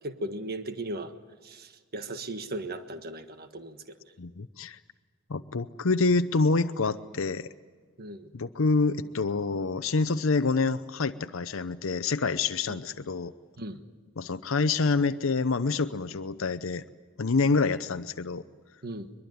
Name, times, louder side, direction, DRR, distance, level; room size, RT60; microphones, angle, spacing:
voice 1, 0.0-1.1 1.4-3.8 8.0-8.3 12.7-12.8 13.6-13.8 18.8-19.1, right 1 dB, 50° right, 9 dB, 1.4 m, -37 dB
voice 2, 4.2-4.8 5.3-7.5 8.3-13.3 14.2-16.8 17.2-18.4, left 3 dB, 70° left, 11 dB, 0.7 m, -27 dB
22.5 x 22.5 x 9.4 m, 1.5 s
head